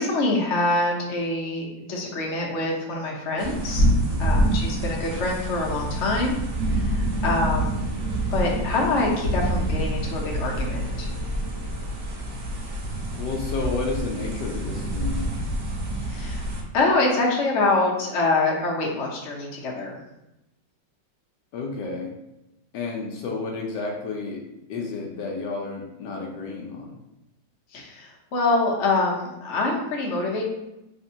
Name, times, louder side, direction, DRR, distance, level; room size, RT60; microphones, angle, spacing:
voice 1, 0.0-3.8 4.2-6.4 6.7-7.8 8.3-11.1 16.1-16.5 16.7-20.0 27.7-30.4, left 2 dB, 55° left, -2 dB, 0.9 m, -25 dB
sound 1, 3.4-16.6, right 1 dB, 65° right, 1.3 m, -27 dB
voice 2, 4.1-4.5 13.1-15.3 21.5-22.1 22.7-24.4 24.7-27.0, left 3 dB, 75° left, 0 dB, 1.2 m, -31 dB
sound 2, 5.3-13.7, equal, 35° right, 1.8 m, -45 dB
3.5 x 3.3 x 2.7 m, 0.91 s
omnidirectional pair, 2.0 m